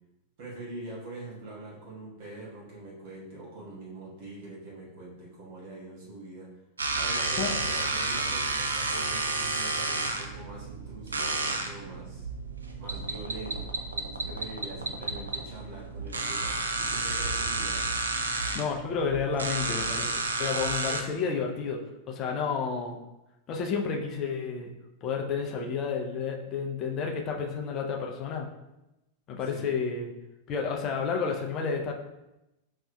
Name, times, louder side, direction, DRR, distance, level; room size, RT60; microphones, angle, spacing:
voice 1, 0.4-6.5 6.9-12.3 12.8-17.9 22.2-22.5 29.4-29.7, right 2 dB, 50° right, -5 dB, 1.3 m, -43 dB
sound 1, 6.8-21.0, right 3 dB, 75° right, 0.4 m, -31 dB
voice 2, 18.5-21.8 22.1-23.0 23.5-24.7 25.0-28.5 29.3-30.1 30.5-31.9, left 5 dB, 35° left, 1 dB, 0.6 m, -31 dB
5.4 x 3.4 x 2.2 m, 0.94 s
figure-of-eight pair, 90°, 0 cm